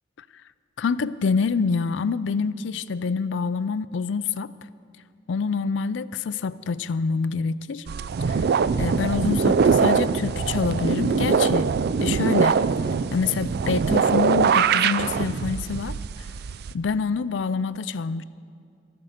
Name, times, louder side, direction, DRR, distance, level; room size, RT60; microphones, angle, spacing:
voice 1, 0.8-4.5 5.3-7.9 8.3-8.4 8.7-11.7 12.0-12.6 13.1-16.3 16.7-18.2, left 5 dB, 80° left, 16 dB, 0.4 m, -26 dB
sound 1, 7.9-16.7, right 6 dB, 60° right, 0.4 m, -22 dB
13.5 x 12.0 x 6.5 m, 2.3 s
head